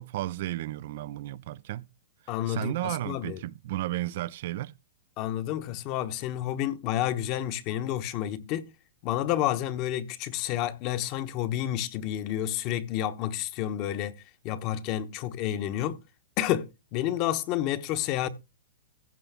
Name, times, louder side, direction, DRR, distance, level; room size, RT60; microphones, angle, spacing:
voice 1, 0.0-1.9 2.5-4.7, right 15 dB, 60° right, 0.5 m, -33 dB
voice 2, 2.3-3.4 5.2-8.7 9.0-16.0 16.4-18.3, left 12 dB, 45° left, 1.0 m, -30 dB
15.5 x 6.8 x 3.6 m
hypercardioid pair, 120°, 0 cm